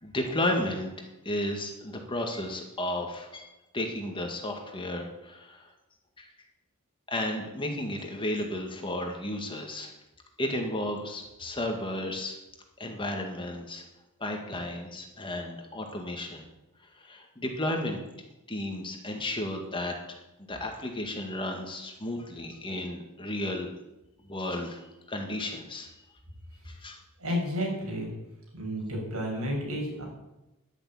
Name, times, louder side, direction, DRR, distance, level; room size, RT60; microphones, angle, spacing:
voice 1, 0.0-0.9 1.3-3.5 3.7-5.7 6.2-6.3 7.1-9.9 10.4-12.4 12.8-13.8 14.2-16.4 17.0-18.0 18.5-20.2 20.5-23.7 24.2-25.9 26.7-27.0, left 1 dB, 20° left, 3 dB, 1.9 m, -33 dB
voice 2, 27.2-28.1 28.5-30.0, equal, 75° right, -2 dB, 6.7 m, -31 dB
11.0 x 10.5 x 8.8 m, 0.95 s
head